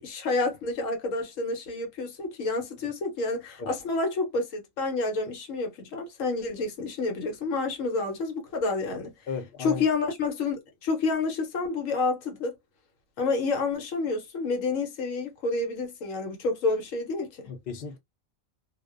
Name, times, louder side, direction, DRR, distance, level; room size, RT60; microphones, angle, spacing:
voice 1, 0.0-9.1 9.6-12.5 13.2-17.4, left 3 dB, 75° left, 1.1 m, -29 dB
voice 2, 9.3-9.8 17.5-18.0, left 5 dB, 50° left, 0.7 m, -35 dB
2.5 x 2.1 x 2.3 m
omnidirectional pair, 1.4 m